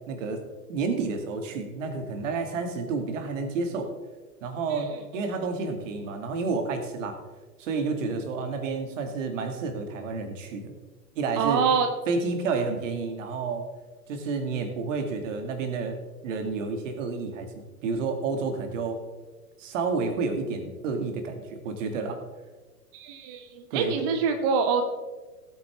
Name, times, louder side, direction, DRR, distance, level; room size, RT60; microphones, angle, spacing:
voice 1, 0.1-0.4 0.7-3.9 4.4-7.2 7.6-10.7 11.2-11.7 12.1-13.6 14.1-16.0 16.2-17.5 17.8-19.0 19.6-22.2 23.7-24.0, right 4 dB, 50° right, 6 dB, 2.2 m, -30 dB
voice 2, 11.4-11.9 22.9-24.8, right 6 dB, 15° right, 6 dB, 0.4 m, -25 dB
17.0 x 8.7 x 3.5 m, 1.3 s
figure-of-eight pair, 105°, 48 cm